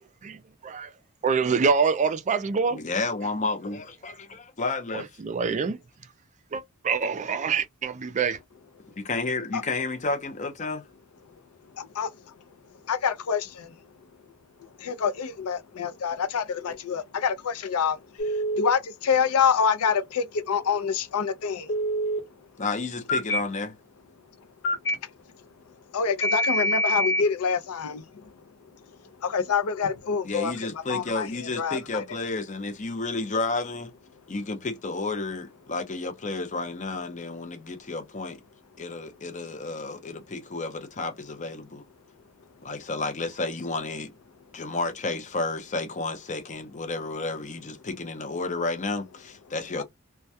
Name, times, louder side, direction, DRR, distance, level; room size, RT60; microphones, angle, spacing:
voice 1, 0.2-0.9 1.2-2.8 4.9-5.8 6.5-8.4, right 5 dB, 35° right, 0.3 m, -25 dB
voice 2, 2.7-5.1 9.0-10.9 22.6-23.8 30.3-33.9 34.3-38.4 38.8-41.8 42.6-44.1 44.5-49.8, left 3 dB, 35° left, 0.6 m, -31 dB
voice 3, 11.8-12.1 12.9-13.7 14.8-18.0 18.6-20.0 20.3-21.7 25.9-27.6 29.2-30.5 30.9-32.0, left 6 dB, 75° left, 0.5 m, -26 dB
Telephone, 18.2-18.7 21.7-22.2 23.1-23.4 24.6-24.9 26.2-27.2, equal, 55° left, 1.0 m, -25 dB
2.2 x 2.2 x 2.7 m
head